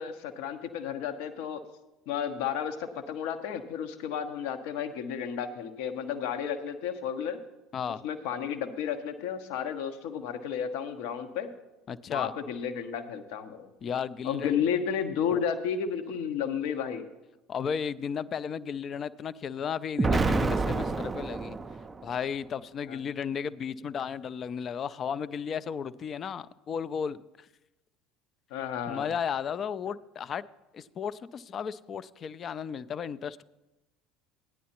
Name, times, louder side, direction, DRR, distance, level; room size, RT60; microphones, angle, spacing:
voice 1, 0.0-1.6 2.1-7.4 8.0-11.5 12.1-13.7 14.2-17.0 22.9-23.0 28.5-29.1, left 8 dB, 60° left, 0.8 m, -32 dB
voice 2, 11.9-12.3 13.8-14.7 15.3-15.4 17.5-21.6 22.0-27.2 28.9-30.4 30.7-33.4, left 7 dB, 40° left, 0.4 m, -34 dB
Explosion, 20.0-22.1, right 3 dB, 20° right, 0.5 m, -28 dB
15.5 x 10.0 x 2.9 m
figure-of-eight pair, 65°, 0 cm